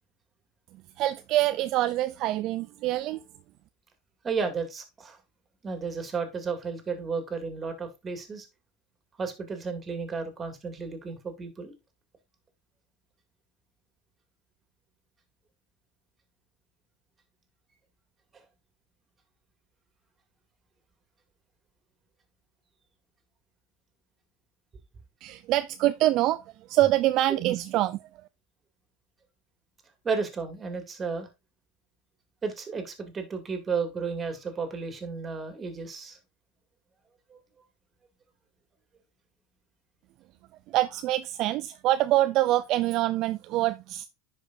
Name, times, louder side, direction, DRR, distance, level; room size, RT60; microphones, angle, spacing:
voice 1, 1.0-3.2 25.2-26.4 26.7-28.1 40.7-44.1, right 15 dB, 55° right, 0.4 m, -25 dB
voice 2, 4.2-5.2 5.6-8.5 9.2-11.7 18.3-18.4 30.0-31.3 32.4-36.2 37.3-37.4, right 5 dB, 25° right, 2.4 m, -33 dB
10.5 x 5.0 x 2.6 m
supercardioid pair, 110°, 0 cm